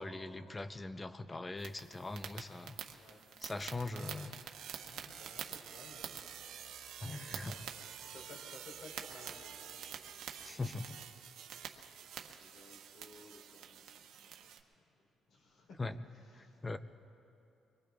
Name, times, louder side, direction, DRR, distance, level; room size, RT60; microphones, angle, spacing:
voice 1, 0.0-2.8 3.4-4.4 7.0-7.6 10.4-11.0 15.8-16.0 16.6-16.8, left 2 dB, 20° left, 11 dB, 0.5 m, -41 dB
sound 1, 1.6-14.6, right 9 dB, 85° right, 0.9 m, -48 dB
voice 2, 2.9-4.3 4.8-10.6 11.0-12.1 12.4-14.9 15.3-16.8, left 2 dB, 65° left, 0 dB, 3.3 m, -59 dB
25.0 x 22.0 x 2.4 m, 2.8 s
cardioid pair, 125°, 0 cm